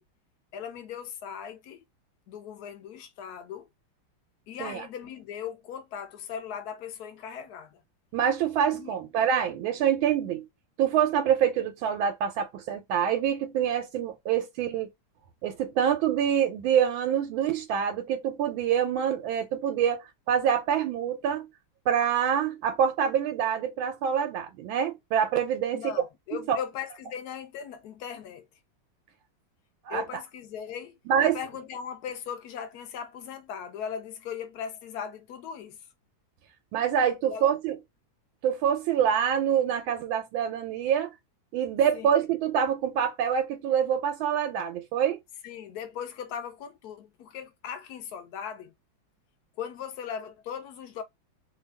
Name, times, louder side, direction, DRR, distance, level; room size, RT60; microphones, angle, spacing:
voice 1, 0.5-1.8 2.3-3.7 4.5-7.8 8.7-9.0 25.7-28.5 29.9-35.8 37.3-37.5 41.9-42.1 45.4-48.7 49.6-51.0, left 8 dB, 65° left, 1.0 m, -38 dB
voice 2, 8.1-10.5 10.8-14.9 15.4-21.5 21.9-25.9 26.5-26.6 29.8-30.0 31.1-31.4 36.7-37.8 38.4-41.1 41.5-45.2, right 8 dB, 90° right, 1.4 m, -26 dB
3.2 x 2.3 x 3.2 m
omnidirectional pair, 2.1 m